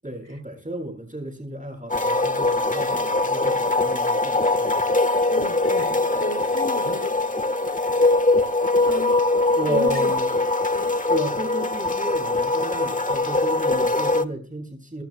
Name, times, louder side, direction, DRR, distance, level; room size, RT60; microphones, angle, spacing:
voice 1, 0.0-4.9 9.5-10.3 11.1-15.0, right 1 dB, 15° right, 1 dB, 7.3 m, -33 dB
sound 1, 1.9-14.2, left 2 dB, 15° left, 1.3 m, -22 dB
voice 2, 5.3-7.2 7.8-8.0 8.8-9.2 9.7-10.1 10.7-10.9, equal, 30° left, 7 dB, 3.1 m, -31 dB
29.5 x 13.0 x 2.2 m, 0.36 s
wide cardioid pair, 80°, 47 cm